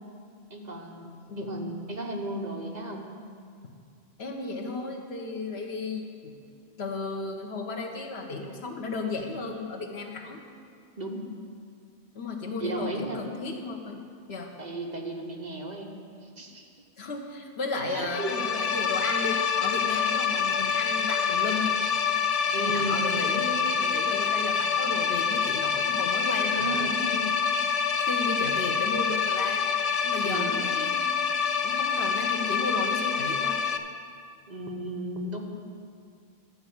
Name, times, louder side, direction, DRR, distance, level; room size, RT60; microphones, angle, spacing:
voice 1, 0.5-1.1 1.4-3.1 8.4-8.5 11.0-11.2 12.6-13.2 14.6-15.9 16.2-16.7 17.9-18.4 22.5-22.9 26.5-27.0 30.2-30.6 34.5-35.6, right 2 dB, 45° right, 1 dB, 1.1 m, -35 dB
voice 2, 1.3-1.8 4.2-6.3 6.8-10.4 12.1-14.5 17.0-21.7 22.6-27.3 28.0-29.7 30.0-31.1 31.6-33.6, left 3 dB, 75° left, 3 dB, 1.3 m, -34 dB
sound 1, 18.0-33.8, left 6 dB, 50° left, 0.5 m, -26 dB
12.5 x 4.8 x 8.5 m, 2.3 s
omnidirectional pair, 1.1 m